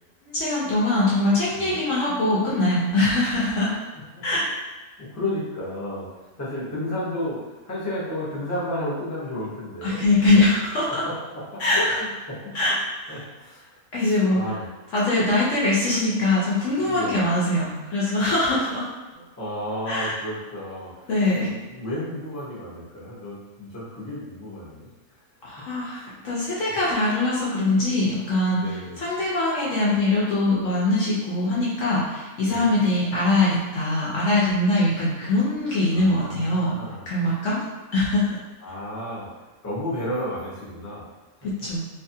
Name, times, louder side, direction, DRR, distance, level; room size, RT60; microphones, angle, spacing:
voice 1, 0.2-3.7 4.2-4.5 9.8-11.0 11.6-12.0 12.5-12.7 13.0-13.2 13.9-14.4 14.9-18.9 19.9-20.2 21.1-21.5 25.4-36.7 37.1-37.6 37.9-38.3 41.4-41.8, left 2 dB, 65° left, -7 dB, 0.8 m, -22 dB
voice 2, 5.0-6.1 6.4-10.0 11.0-11.1 11.5-11.6 12.0-12.4 12.7-12.8 13.1-13.6 14.0-14.6 16.8-17.2 19.1-24.9 25.9-26.1 26.6-26.8 28.5-29.0 32.4-32.7 35.9-37.0 38.6-39.3 39.6-41.0, left 1 dB, 15° left, -9 dB, 0.6 m, -32 dB
2.7 x 2.4 x 2.6 m, 1.2 s
omnidirectional pair, 1.6 m